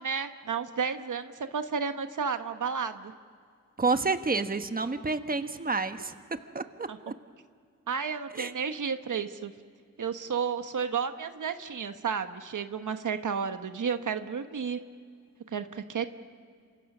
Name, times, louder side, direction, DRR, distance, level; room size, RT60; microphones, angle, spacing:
voice 1, 0.0-3.1 6.9-7.0 7.9-9.5 10.0-14.8 15.5-16.1, right 6 dB, 70° right, 8 dB, 1.2 m, -32 dB
voice 2, 3.8-6.1 6.5-7.1 8.3-8.5, right 4 dB, 25° right, 8 dB, 1.3 m, -29 dB
28.0 x 25.5 x 6.2 m, 2.2 s
cardioid pair, 60°, 32 cm